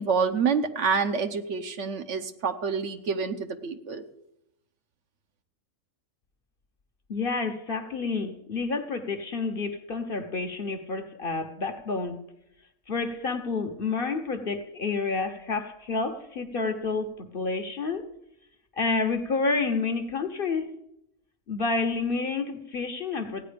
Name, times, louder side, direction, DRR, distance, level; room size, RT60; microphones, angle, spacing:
voice 1, 0.0-4.0, right 5 dB, 60° right, 8 dB, 1.1 m, -27 dB
voice 2, 7.1-12.2 12.9-18.1 18.8-20.8 21.5-23.4, left 4 dB, 45° left, 8 dB, 1.0 m, -29 dB
16.0 x 9.4 x 5.1 m, 0.82 s
omnidirectional pair, 1.4 m